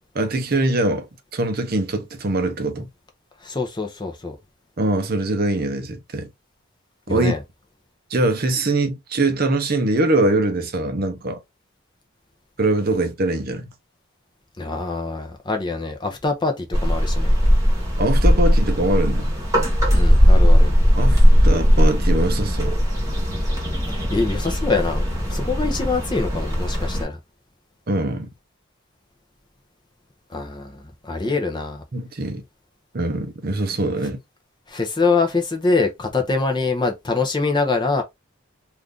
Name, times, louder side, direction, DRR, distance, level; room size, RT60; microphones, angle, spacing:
voice 1, 0.1-2.9 4.8-6.3 7.1-7.3 8.1-11.4 12.6-13.7 18.0-19.3 20.9-22.8 27.9-28.3 31.2-31.4 31.9-32.4 32.9-34.2, right 2 dB, 45° right, 0.6 m, -22 dB
voice 2, 3.4-4.4 7.1-7.4 14.6-17.3 19.9-20.7 23.9-27.2 30.3-31.8 34.7-38.0, left 3 dB, 20° left, 0.5 m, -24 dB
sound 1, 16.7-27.0, equal, 15° right, 1.1 m, -18 dB
2.5 x 2.5 x 3.4 m
head